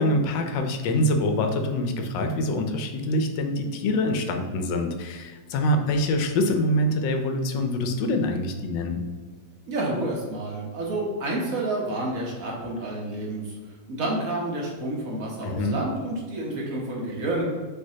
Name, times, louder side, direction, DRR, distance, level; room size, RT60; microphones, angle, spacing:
voice 1, 0.0-9.0 15.4-15.8, left 1 dB, 80° left, 5 dB, 1.3 m, -25 dB
voice 2, 9.7-13.5 13.9-17.4, right 2 dB, 55° right, -2 dB, 1.1 m, -29 dB
5.5 x 3.2 x 2.7 m, 1.4 s
omnidirectional pair, 2.0 m